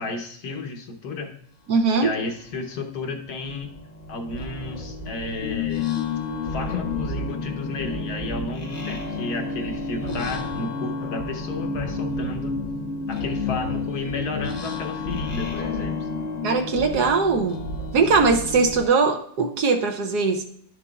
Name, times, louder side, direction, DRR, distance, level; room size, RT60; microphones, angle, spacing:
voice 1, 0.0-1.3 2.0-3.7 4.1-5.9 6.4-12.6 13.1-16.1, left 3 dB, 60° left, 4 dB, 1.3 m, -32 dB
voice 2, 1.7-2.1 16.4-17.6 17.9-20.4, right 4 dB, 65° right, 5 dB, 1.2 m, -20 dB
sound 1, 1.8-1.9 2.3-18.9, left 1 dB, 45° left, 0.5 m, -34 dB
sound 2, 5.4-16.8, left 5 dB, 85° left, 0.6 m, -32 dB
11.0 x 6.9 x 2.3 m, 0.65 s
omnidirectional pair, 2.1 m